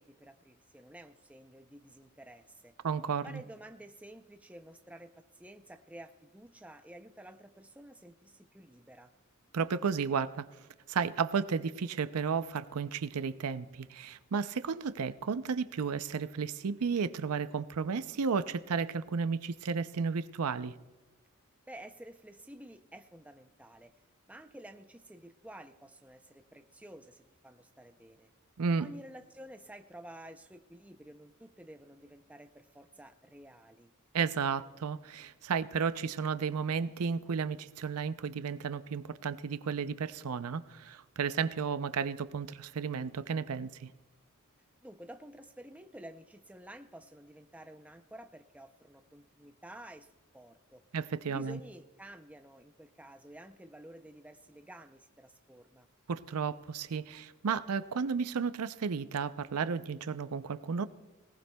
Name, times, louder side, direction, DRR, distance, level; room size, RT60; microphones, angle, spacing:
voice 1, 0.0-2.7 3.2-9.1 21.7-23.9 24.3-28.3 28.8-33.9 44.8-50.8 51.3-55.9, right 1 dB, 5° right, 7 dB, 0.5 m, -51 dB
voice 2, 2.8-3.4 9.5-10.5 10.9-20.7 28.6-28.9 34.1-43.9 50.9-51.6 56.1-60.9, right 5 dB, 90° right, 13 dB, 0.5 m, -33 dB
25.0 x 18.0 x 2.3 m, 1.2 s
head